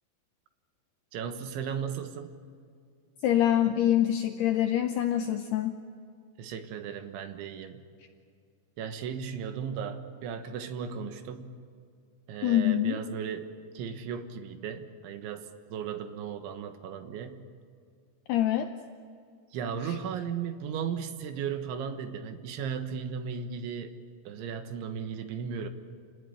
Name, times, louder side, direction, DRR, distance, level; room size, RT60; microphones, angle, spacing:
voice 1, 1.1-2.4 6.4-7.8 8.8-11.5 12.3-13.5 13.8-17.4 19.5-23.9 24.3-25.7, right 7 dB, 75° right, 8 dB, 3.5 m, -36 dB
voice 2, 3.2-5.7 12.4-13.0 18.3-18.7 19.8-20.0, left 11 dB, 90° left, 7 dB, 2.3 m, -25 dB
28.5 x 18.5 x 9.9 m, 2.3 s
omnidirectional pair, 5.8 m